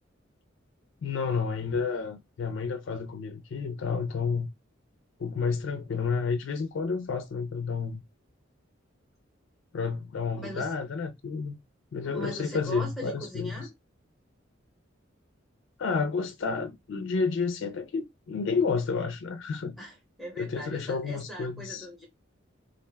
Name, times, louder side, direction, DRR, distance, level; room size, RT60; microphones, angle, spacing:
voice 1, 1.0-4.5 5.2-8.0 9.7-11.6 11.9-13.7 15.8-19.7 20.4-21.9, left 5 dB, 65° left, 0.4 m, -30 dB
voice 2, 10.4-10.7 12.0-13.7 19.8-22.1, equal, ahead, 0.8 m, -41 dB
2.4 x 2.1 x 3.2 m
head